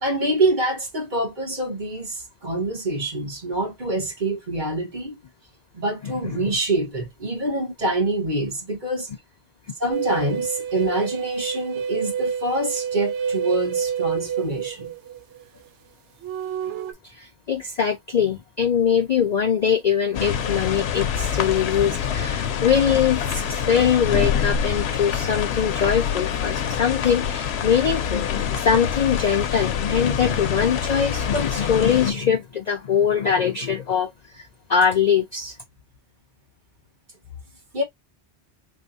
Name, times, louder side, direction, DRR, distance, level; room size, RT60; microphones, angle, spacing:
voice 1, 0.0-5.2 5.7-9.1 9.8-14.9 37.7-37.8, right 1 dB, 45° right, 1.4 m, -26 dB
voice 2, 6.0-6.4 17.0-35.6, left 7 dB, 55° left, 0.5 m, -22 dB
sound 1, 9.9-15.4 16.2-16.9, right 7 dB, 80° right, 1.0 m, -28 dB
sound 2, 20.1-32.1, left 8 dB, 75° left, 0.9 m, -26 dB
3.8 x 3.3 x 2.7 m
omnidirectional pair, 1.2 m